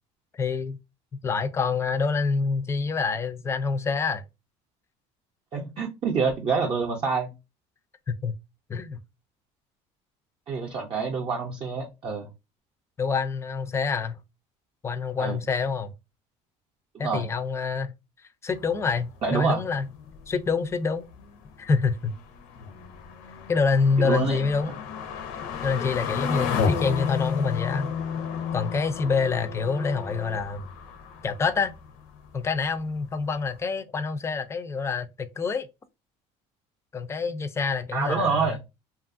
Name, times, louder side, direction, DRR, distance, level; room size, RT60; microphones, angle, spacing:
voice 1, 0.3-0.8 1.2-4.2 8.1-8.3 8.7-9.0 13.0-14.2 14.8-15.9 17.0-17.9 18.4-19.9 20.3-21.1 21.6-22.1 23.5-24.7 25.6-27.9 28.5-30.6 31.2-31.7 32.3-35.7 36.9-38.6, left 5 dB, 20° left, 0.3 m, -26 dB
voice 2, 5.5-7.3 10.5-12.3 15.2-15.4 17.0-17.3 19.2-19.6 24.0-24.4 37.9-38.6, right 5 dB, 35° right, 0.5 m, -27 dB
sound 1, 18.5-32.7 33.0-33.1 33.5-33.6, left 6 dB, 85° left, 0.6 m, -33 dB
2.6 x 2.4 x 2.4 m
cardioid pair, 125°, 15 cm